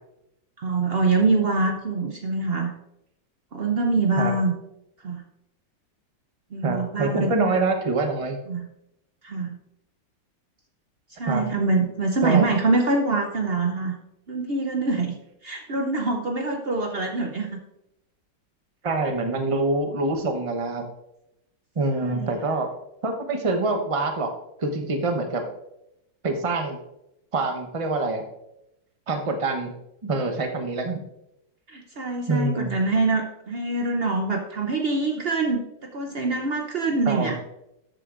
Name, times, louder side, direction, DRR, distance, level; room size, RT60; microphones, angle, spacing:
voice 1, 0.6-2.7 3.5-4.5 5.0-5.2 6.5-7.3 8.5-8.7 9.2-9.6 11.1-13.9 14.3-15.2 15.4-17.6 22.0-22.4 31.7-37.4, right 3 dB, 85° right, 3 dB, 0.5 m, -24 dB
voice 2, 6.6-8.4 11.3-11.4 12.2-12.5 18.8-20.8 21.8-22.7 23.0-24.3 24.6-25.4 26.2-26.8 27.3-28.2 29.1-29.7 30.0-31.0 32.3-32.7 37.1-37.3, right 3 dB, 35° right, 5 dB, 0.5 m, -25 dB
13.0 x 7.8 x 2.5 m, 0.84 s
omnidirectional pair, 2.1 m